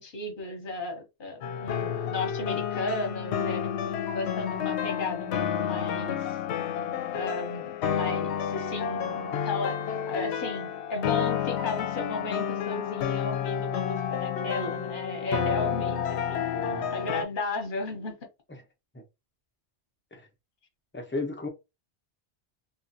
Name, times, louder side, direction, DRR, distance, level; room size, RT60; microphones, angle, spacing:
voice 1, 0.0-3.7 4.1-6.4 7.1-16.4 16.9-18.1, left 3 dB, 50° left, 1.0 m, -34 dB
sound 1, 1.4-17.2, left 8 dB, 80° left, 0.8 m, -30 dB
voice 2, 16.5-16.9 18.9-19.0 20.1-20.3 20.9-21.5, left 2 dB, 15° left, 0.5 m, -34 dB
2.8 x 2.4 x 2.6 m
omnidirectional pair, 1.1 m